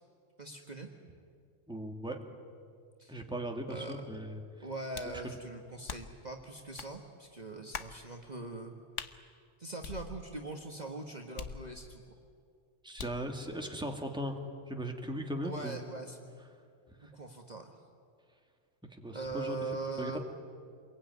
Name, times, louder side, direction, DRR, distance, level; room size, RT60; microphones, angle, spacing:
voice 1, 0.4-0.9 3.0-3.2 3.7-4.0 4.6-8.8 9.6-12.0 15.4-16.4 17.0-17.7 19.1-20.2, right 3 dB, 35° right, 2 dB, 1.6 m, -41 dB
voice 2, 1.7-2.2 3.1-4.4 5.2-5.4 12.8-14.3 14.7-15.8 19.0-19.6 20.0-20.2, right 1 dB, 5° right, 2 dB, 2.2 m, -38 dB
sound 1, 4.9-5.2 5.9-6.2 6.8-6.9 7.7-8.0 9.0-9.1 9.8-10.5 11.4-12.0 13.0-13.3, left 6 dB, 75° left, 1.3 m, -43 dB
27.0 x 22.0 x 9.5 m, 2.2 s
omnidirectional pair, 1.3 m